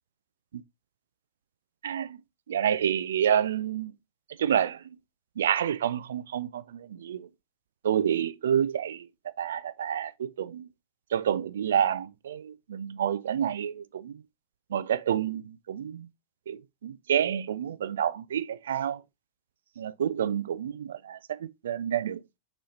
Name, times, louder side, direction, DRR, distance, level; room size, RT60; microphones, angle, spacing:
voice 1, 1.8-2.2 2.5-3.9 4.4-4.8 5.4-7.3 7.8-9.1 9.4-10.7 11.1-14.1 14.7-16.1 16.5-19.0 19.8-22.2, right 9 dB, 65° right, 0.3 m, -28 dB
6.2 x 3.0 x 2.6 m
figure-of-eight pair, 90°, 0 cm